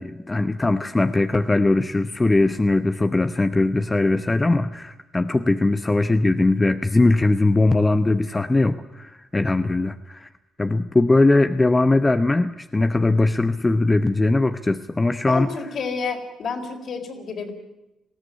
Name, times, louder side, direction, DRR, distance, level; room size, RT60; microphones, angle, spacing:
voice 1, 0.0-10.3 10.6-15.5, left 2 dB, 20° left, 9 dB, 0.8 m, -20 dB
voice 2, 15.3-17.5, left 5 dB, 60° left, 3 dB, 4.2 m, -29 dB
20.0 x 15.5 x 9.9 m, 0.96 s
cardioid pair, 90°, 0 cm